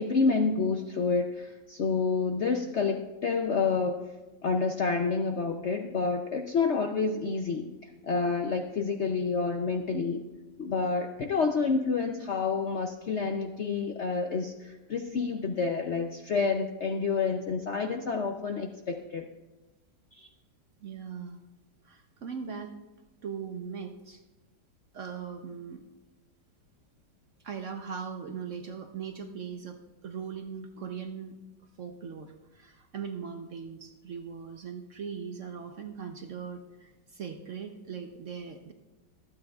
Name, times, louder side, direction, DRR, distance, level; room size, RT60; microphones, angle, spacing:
voice 1, 0.0-4.0 4.4-7.7 8.0-10.2 10.6-18.7 19.1-19.2 20.1-20.3, left 4 dB, 60° left, 4 dB, 0.7 m, -28 dB
voice 2, 20.8-21.4 21.8-22.8 23.2-24.2 24.9-25.8 27.4-31.3 31.8-38.7, right 6 dB, 60° right, 5 dB, 0.9 m, -40 dB
25.0 x 8.7 x 2.4 m, 1.1 s
omnidirectional pair, 1.9 m